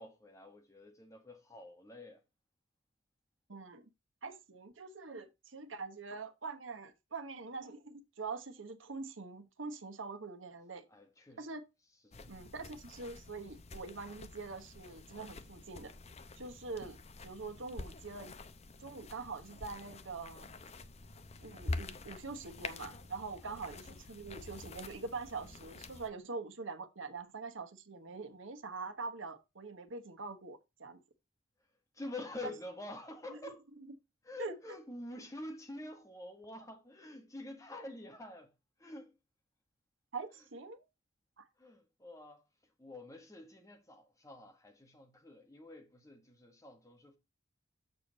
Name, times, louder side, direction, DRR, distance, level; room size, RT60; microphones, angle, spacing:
voice 1, 0.0-2.2 10.9-11.4 12.0-12.3 23.4-23.6 31.9-33.6 34.2-38.5 38.8-39.1 41.6-42.4 42.8-47.2, left 2 dB, 15° left, 1.5 m, -47 dB
voice 2, 3.5-3.8 4.2-10.8 11.4-11.6 12.3-15.9 16.4-17.0 17.2-18.4 18.8-20.6 21.4-31.0 32.4-32.5 33.3-34.0 34.4-34.8 40.1-40.9 41.4-41.5, right 4 dB, 85° right, 1.2 m, -44 dB
sound 1, 12.1-26.1, left 3 dB, 35° left, 0.7 m, -47 dB
7.1 x 6.8 x 4.0 m
head